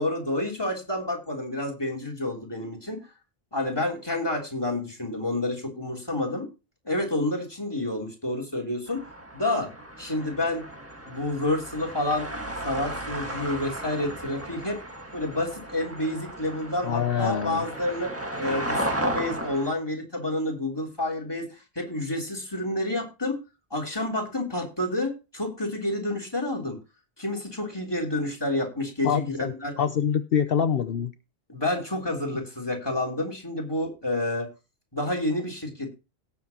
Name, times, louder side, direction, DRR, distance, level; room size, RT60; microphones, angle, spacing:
voice 1, 0.0-3.0 3.5-6.5 6.8-9.0 9.3-9.7 10.0-10.7 11.1-12.3 12.6-14.8 15.1-18.1 18.4-23.4 23.7-26.8 27.2-29.7 31.5-34.5 34.9-35.9, left 1 dB, 20° left, 3 dB, 3.3 m, -29 dB
sound 1, 8.9-19.7, right 1 dB, 15° right, 1.6 m, -35 dB
voice 2, 16.8-17.7 29.0-31.1, left 8 dB, 65° left, 10 dB, 0.9 m, -25 dB
18.0 x 7.3 x 2.9 m, 0.29 s
omnidirectional pair, 1.1 m